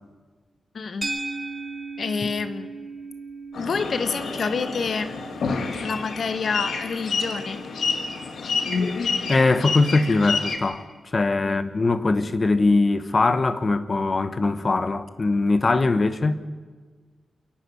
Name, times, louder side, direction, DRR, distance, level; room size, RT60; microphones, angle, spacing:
voice 1, 0.7-1.1 2.0-2.7 3.5-5.1 5.8-7.6 11.4-11.6, left 5 dB, 55° left, 1.5 m, -28 dB
sound 1, 1.0-9.4, right 3 dB, 15° right, 2.7 m, -38 dB
sound 2, 3.5-10.6, left 4 dB, 75° left, 2.3 m, -28 dB
voice 2, 9.3-10.9 11.1-16.3, left 3 dB, 35° left, 1.1 m, -21 dB
28.5 x 11.0 x 9.7 m
wide cardioid pair, 140°, 0 cm